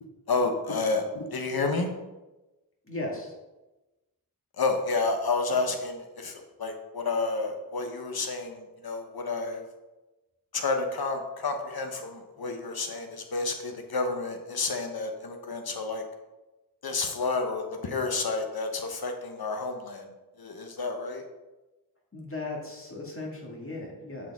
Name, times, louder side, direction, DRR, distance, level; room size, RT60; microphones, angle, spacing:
voice 1, 0.3-1.9 4.6-9.7 10.5-16.0 16.8-20.1 20.4-21.2, left 3 dB, 75° left, 5 dB, 1.0 m, -30 dB
voice 2, 2.8-3.3 22.1-24.3, left 2 dB, 35° left, -1 dB, 1.9 m, -37 dB
7.6 x 4.7 x 3.5 m, 1.1 s
wide cardioid pair, 50°, 38 cm